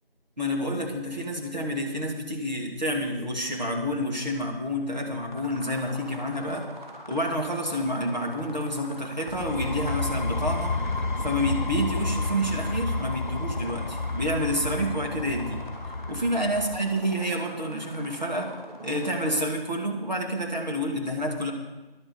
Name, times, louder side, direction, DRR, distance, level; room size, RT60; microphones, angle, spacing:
voice 1, 0.4-6.7 7.1-10.7 11.2-15.6 16.1-18.5 18.8-21.5, equal, 45° right, 0 dB, 2.3 m, -29 dB
sound 1, 5.3-19.4, equal, 5° left, 3.2 m, -44 dB
sound 2, 9.3-16.9, left 3 dB, 55° left, 0.6 m, -31 dB
11.0 x 9.6 x 8.0 m, 1.1 s
figure-of-eight pair, 175°, 29 cm